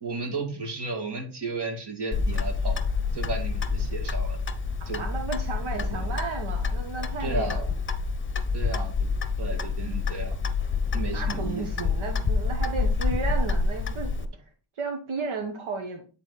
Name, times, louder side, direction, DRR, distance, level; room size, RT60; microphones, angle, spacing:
voice 1, 0.0-2.8 3.1-4.4 4.9-5.0 5.7-6.1 7.2-7.6 8.5-9.1 9.4-10.4 10.9-11.9, right 3 dB, 55° right, 4 dB, 2.1 m, -34 dB
Clock, 2.1-14.3, left 4 dB, 25° left, 0.7 m, -28 dB
voice 2, 4.9-7.7 11.1-14.3 14.7-16.1, right 4 dB, 80° right, 3 dB, 1.2 m, -33 dB
9.1 x 4.0 x 4.0 m, 0.38 s
wide cardioid pair, 100°, 47 cm